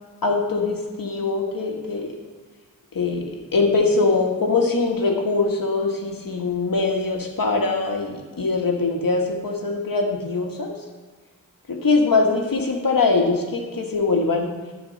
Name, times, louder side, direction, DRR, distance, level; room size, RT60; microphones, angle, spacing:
voice 1, 0.2-2.1 2.9-10.7 11.7-14.5, left 3 dB, 85° left, 1 dB, 1.6 m, -22 dB
12.0 x 4.7 x 6.7 m, 1.4 s
wide cardioid pair, 70°, 33 cm